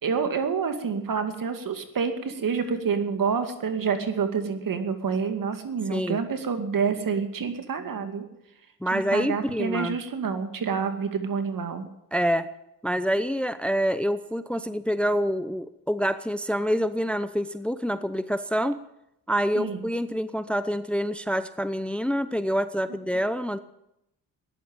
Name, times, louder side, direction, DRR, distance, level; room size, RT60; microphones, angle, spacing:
voice 1, 0.0-8.3 8.9-11.9 19.5-19.8, right 6 dB, 55° right, 8 dB, 2.3 m, -28 dB
voice 2, 8.8-10.0 12.1-12.5 12.8-18.8 19.3-23.6, equal, 5° left, 13 dB, 0.7 m, -26 dB
14.5 x 11.0 x 8.8 m, 0.83 s
cardioid pair, 65°, 38 cm